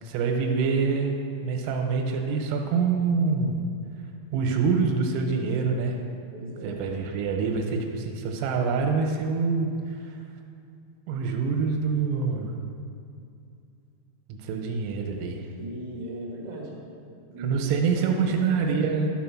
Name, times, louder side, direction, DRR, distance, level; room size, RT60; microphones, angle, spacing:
voice 1, 0.0-3.6 4.3-6.0 6.6-10.2 11.1-12.5 14.3-15.4 17.4-19.1, right 5 dB, 85° right, 3 dB, 3.4 m, -26 dB
voice 2, 6.3-6.8 15.6-16.7 17.3-17.5 17.9-19.1, right 1 dB, 60° right, -5 dB, 1.3 m, -38 dB
12.0 x 4.6 x 5.9 m, 2.5 s
omnidirectional pair, 5.9 m